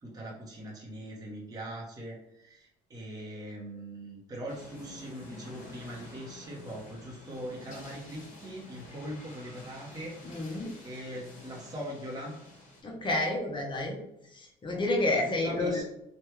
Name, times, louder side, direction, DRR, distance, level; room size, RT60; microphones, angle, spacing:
voice 1, 0.0-10.1 10.4-12.3 15.4-15.8, right 1 dB, 20° right, -3 dB, 0.8 m, -41 dB
sound 1, 4.5-12.8, left 1 dB, 45° left, 1.4 m, -49 dB
voice 2, 10.2-10.7 12.8-14.0 14.3-15.8, left 2 dB, 30° left, 0 dB, 0.7 m, -30 dB
3.2 x 2.2 x 3.0 m, 0.83 s
cardioid pair, 110°, 17 cm